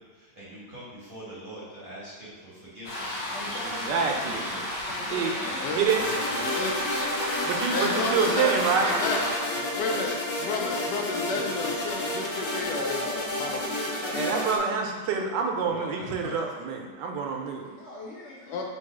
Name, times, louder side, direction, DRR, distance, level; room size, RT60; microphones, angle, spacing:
voice 1, 0.0-4.7 5.3-6.7 15.6-16.4, equal, 40° right, -8 dB, 0.8 m, -42 dB
sound 1, 2.8-9.4, left 1 dB, 25° left, 1.2 m, -32 dB
voice 2, 3.3-4.6 4.9-6.3 9.2-10.1 17.4-18.6, left 1 dB, 55° left, -7 dB, 0.8 m, -43 dB
voice 3, 3.9-4.5 5.1-5.3 5.7-6.0 7.5-9.0 14.1-17.7, right 5 dB, 75° right, 2 dB, 1.2 m, -27 dB
sound 2, 5.9-14.6, left 1 dB, 90° left, 1.7 m, -31 dB
voice 4, 7.7-9.2 9.8-14.2 18.5-18.6, left 3 dB, 75° left, 1 dB, 1.1 m, -32 dB
3.8 x 2.7 x 4.7 m, 1.3 s
omnidirectional pair, 1.9 m